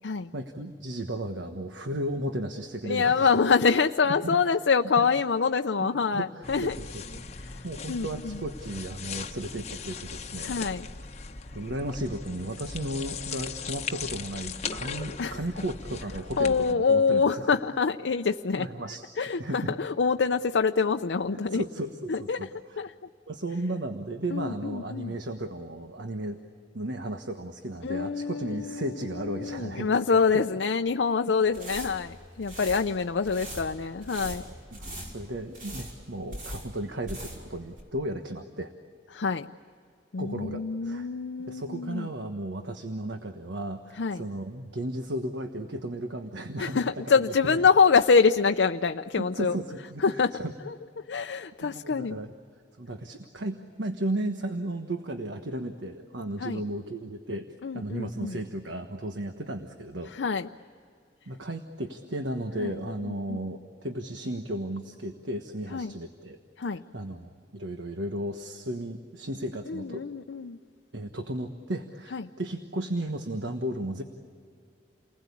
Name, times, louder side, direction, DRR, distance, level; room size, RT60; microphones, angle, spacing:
voice 1, 0.3-3.3 5.0-5.1 6.1-7.2 7.6-10.5 11.5-17.5 18.6-19.8 21.3-22.5 23.3-26.4 26.7-30.4 34.4-38.7 40.2-41.1 41.5-47.6 49.1-50.0 50.3-50.5 51.6-52.3 52.8-57.5 57.7-60.1 61.3-66.4 66.7-70.0 70.9-74.0, right 1 dB, 85° right, 6 dB, 1.3 m, -34 dB
voice 2, 2.8-6.8 7.5-7.6 7.9-8.4 10.4-10.9 15.2-15.4 16.4-18.7 19.2-21.6 22.1-22.5 22.8-22.9 24.3-25.1 27.8-34.4 39.1-39.5 40.1-42.1 44.0-44.2 46.6-49.6 50.0-50.4 50.7-50.8 51.1-52.2 56.4-56.6 57.6-58.4 60.1-60.5 62.6-62.7 63.1-63.4 65.7-65.9 66.6-66.8 69.7-70.6 72.1-72.3, left 5 dB, 80° left, 6 dB, 0.6 m, -25 dB
sound 1, 6.4-16.7, left 5 dB, 40° left, 0.9 m, -39 dB
sound 2, 31.4-37.5 37.8-37.9, right 1 dB, 50° right, 5.4 m, -41 dB
29.5 x 20.5 x 8.5 m, 2.3 s
head